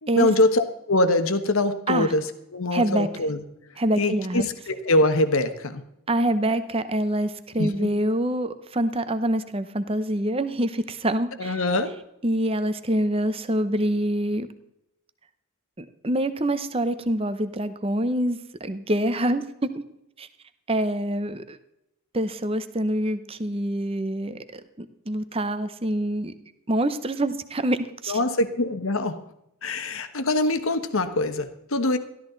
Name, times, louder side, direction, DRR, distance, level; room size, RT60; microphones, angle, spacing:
voice 1, 0.0-2.2 2.5-3.4 3.9-5.8 7.6-7.9 11.4-11.9 28.1-29.2 29.6-32.0, left 2 dB, 65° left, 10 dB, 1.1 m, -23 dB
voice 2, 2.7-3.1 3.8-4.5 6.1-11.7 12.2-14.5 15.8-19.8 20.2-20.3 20.7-21.6 22.1-26.3 26.7-27.8 28.0-28.2, right 1 dB, 25° right, 12 dB, 0.7 m, -26 dB
13.5 x 12.5 x 3.9 m, 0.83 s
head